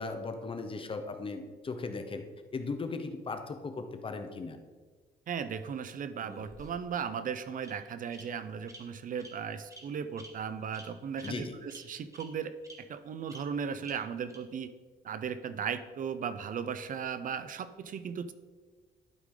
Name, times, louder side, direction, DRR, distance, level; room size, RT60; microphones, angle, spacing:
voice 1, 0.0-2.2 2.5-4.6 11.2-11.6, left 3 dB, 30° left, 7 dB, 0.8 m, -37 dB
voice 2, 5.3-14.7 15.0-18.3, right 7 dB, 50° right, 12 dB, 0.5 m, -37 dB
Bird vocalization bird call bird song, 6.2-7.0 7.6-7.7 8.1-8.2 8.7-8.8 9.2-9.3 9.7-9.8 10.2-10.3 10.7-10.9 11.2-11.3 11.7-11.8 12.1-12.2 12.6-12.7 13.3-13.4 13.8-13.9 14.3-14.4, right 2 dB, 20° right, 1.3 m, -49 dB
12.0 x 4.8 x 3.8 m, 1.4 s
cardioid pair, 120°, 17 cm